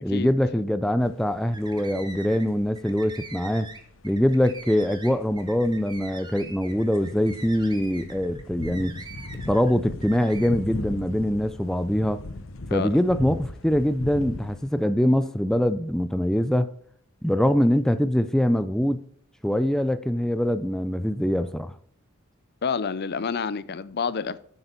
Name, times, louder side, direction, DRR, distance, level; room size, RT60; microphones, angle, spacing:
voice 1, 0.0-3.7 4.0-9.0 9.5-12.2 12.7-16.7 17.2-19.0 19.4-21.7, equal, 5° left, 0.4 m, -23 dB
sound 1, 1.0-14.7, left 2 dB, 70° left, 0.9 m, -39 dB
sound 2, 1.5-2.5 2.7-9.7 10.0-10.5, right 3 dB, 20° right, 1.6 m, -43 dB
voice 2, 22.6-24.4, left 5 dB, 55° left, 0.6 m, -28 dB
9.4 x 8.0 x 4.5 m
head